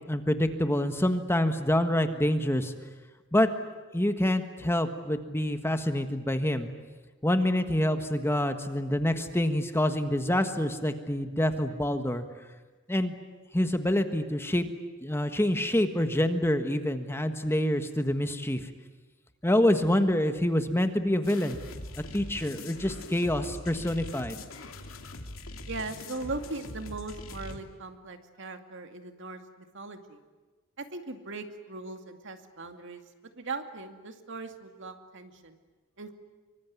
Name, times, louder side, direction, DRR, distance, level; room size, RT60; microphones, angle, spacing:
voice 1, 0.1-2.7 3.3-3.5 3.9-6.7 7.2-12.2 12.9-13.1 13.5-14.7 15.0-18.6 19.4-21.6 22.1-24.4, left 1 dB, 10° left, 7 dB, 1.5 m, -26 dB
sound 1, 21.2-27.6, left 2 dB, 85° left, 2.7 m, -42 dB
voice 2, 25.7-30.2 30.8-33.0 33.3-35.6 36.0-36.1, right 3 dB, 65° right, 6 dB, 2.4 m, -39 dB
25.0 x 24.5 x 9.7 m, 1.3 s
head